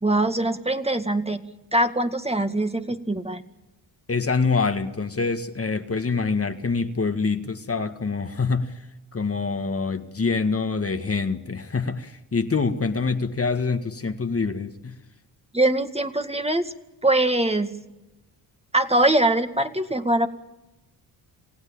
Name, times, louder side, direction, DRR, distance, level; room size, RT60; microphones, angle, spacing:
voice 1, 0.0-3.4 15.5-16.6 17.0-17.8 18.7-20.3, right 1 dB, 15° right, 2.0 m, -22 dB
voice 2, 4.1-8.9 9.1-15.0, left 4 dB, 30° left, 1.8 m, -25 dB
27.5 x 16.0 x 8.8 m
supercardioid pair, 60°, 45 cm